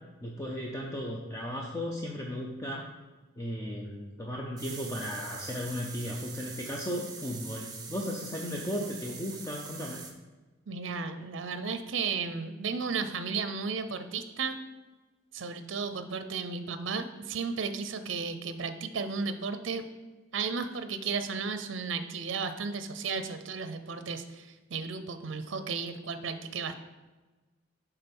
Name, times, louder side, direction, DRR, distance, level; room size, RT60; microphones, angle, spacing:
voice 1, 0.2-2.9 3.4-10.0, equal, 15° left, -1 dB, 0.6 m, -35 dB
sound 1, 4.6-10.1, right 5 dB, 20° right, 0.8 m, -43 dB
voice 2, 10.7-14.6 15.3-19.8 20.3-26.8, right 5 dB, 65° right, 10 dB, 0.5 m, -34 dB
8.8 x 3.6 x 5.3 m, 1.2 s
head